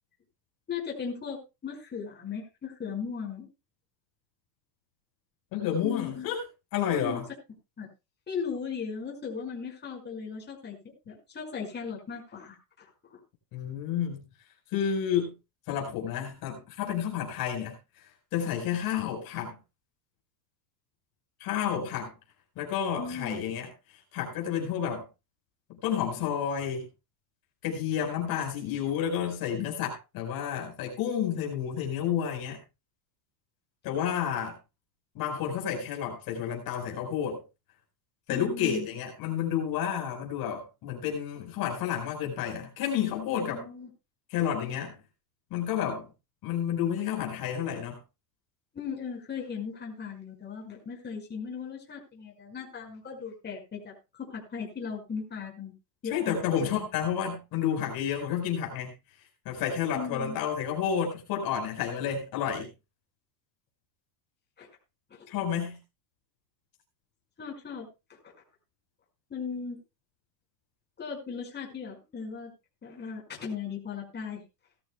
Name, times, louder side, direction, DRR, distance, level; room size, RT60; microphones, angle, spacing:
voice 1, 0.7-3.5 5.8-6.3 6.9-7.2 7.8-7.9 8.3-10.8 11.1-13.2 23.0-23.4 38.3-38.9 43.5-43.9 48.7-55.7 56.0-56.9 59.9-60.4 64.6-64.7 65.1-65.3 67.4-67.9 69.3-69.8 71.0-72.5 72.8-74.4, left 6 dB, 20° left, 5.4 m, -37 dB
voice 2, 5.5-6.4 6.7-7.2 13.5-14.3 14.7-15.3 15.7-19.5 21.4-22.1 22.6-25.0 25.8-26.9 27.6-32.6 33.8-34.5 35.1-37.4 38.3-43.7 44.3-45.0 45.5-46.1 46.4-48.0 56.1-58.9 59.4-62.7 65.3-65.8, left 8 dB, 45° left, 4.9 m, -30 dB
19.0 x 13.0 x 2.3 m
supercardioid pair, 125°, 48 cm